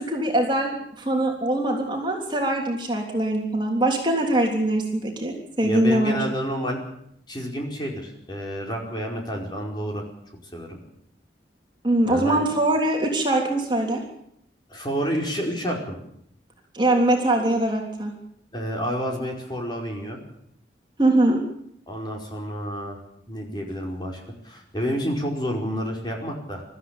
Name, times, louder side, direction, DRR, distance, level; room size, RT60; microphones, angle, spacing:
voice 1, 0.0-6.2 11.8-14.0 16.7-18.1 21.0-21.4, right 1 dB, 25° right, 1 dB, 3.4 m, -22 dB
voice 2, 5.6-6.8 7.3-10.0 10.5-10.8 12.0-12.4 14.7-16.0 18.5-20.2 21.9-23.0 23.3-26.6, equal, 25° left, 0 dB, 4.9 m, -29 dB
24.0 x 14.0 x 8.9 m, 0.73 s
head